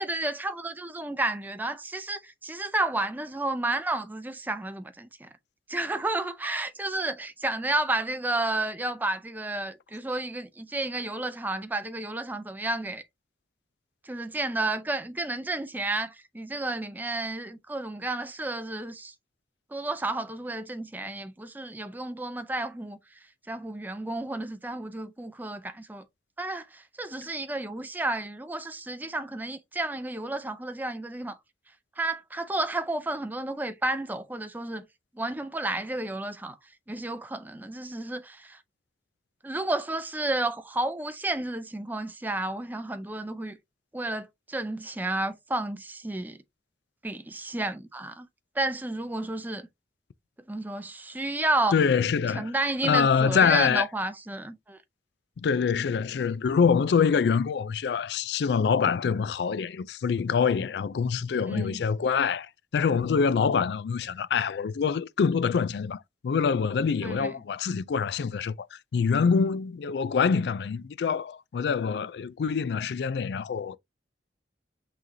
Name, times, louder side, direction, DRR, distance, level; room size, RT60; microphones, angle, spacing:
voice 1, 0.0-5.3 5.7-13.0 14.1-19.1 19.7-23.0 23.5-26.0 26.4-31.4 32.0-34.8 35.2-36.6 36.9-38.6 39.4-43.6 43.9-46.4 47.0-48.3 48.6-49.7 50.5-51.7 52.3-54.8 61.5-61.8 67.0-67.3, right 2 dB, 10° right, 0.4 m, -31 dB
voice 2, 51.7-52.5 52.8-53.9 55.4-73.8, left 6 dB, 70° left, 0.3 m, -25 dB
5.9 x 3.2 x 2.6 m
head